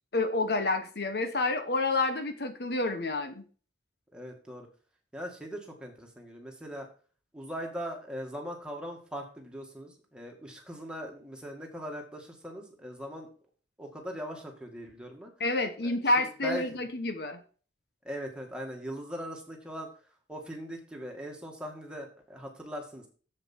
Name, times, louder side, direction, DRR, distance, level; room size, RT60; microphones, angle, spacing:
voice 1, 0.1-3.5 15.4-17.4, left 2 dB, 60° left, 8 dB, 1.0 m, -29 dB
voice 2, 4.1-4.7 5.1-6.9 7.3-13.3 13.8-15.3 15.8-16.8 18.0-19.9 20.3-23.1, equal, 5° right, 0 dB, 2.0 m, -40 dB
7.6 x 7.6 x 4.5 m, 0.39 s
head